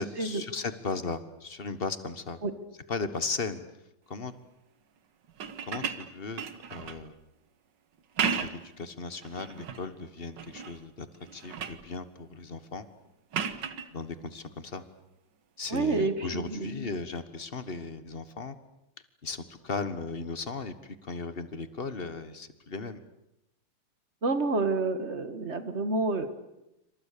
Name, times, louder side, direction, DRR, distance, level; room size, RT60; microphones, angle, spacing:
voice 1, 0.0-2.4 2.9-3.6 4.1-4.3 5.6-6.4 6.7-7.1 8.3-11.1 11.3-12.9 13.9-14.8 15.6-18.5 19.2-23.0, left 4 dB, 30° left, 12 dB, 1.4 m, -36 dB
sound 1, 5.3-7.1 8.0-8.7 9.2-9.8 10.4-10.8 11.1-11.9 13.3-13.9 15.6-15.8, right 6 dB, 60° right, 1.9 m, -34 dB
voice 2, 15.7-16.9 24.2-26.3, right 3 dB, 35° right, 10 dB, 1.9 m, -29 dB
28.0 x 25.5 x 6.8 m, 0.89 s
omnidirectional pair, 2.3 m